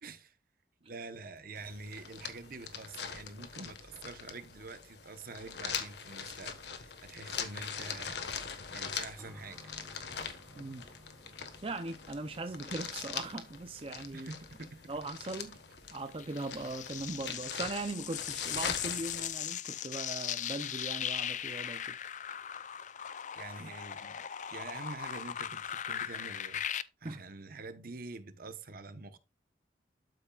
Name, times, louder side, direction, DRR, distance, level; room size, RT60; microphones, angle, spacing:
voice 1, 0.0-0.4 0.8-9.7 11.3-11.4 14.1-14.8 23.3-26.6 27.0-29.2, right 3 dB, 50° right, 1.0 m, -46 dB
sound 1, 1.6-19.3, left 7 dB, 65° left, 1.4 m, -42 dB
sound 2, 9.2-23.6 23.9-24.0 24.9-25.0, left 1 dB, 15° right, 2.0 m, -62 dB
voice 2, 10.6-10.9 11.6-14.3 14.9-15.6 15.9-21.9 27.0-27.2, right 2 dB, 30° right, 0.5 m, -39 dB
sound 3, 16.2-26.8, left 10 dB, 45° left, 0.4 m, -39 dB
12.5 x 5.7 x 2.3 m
head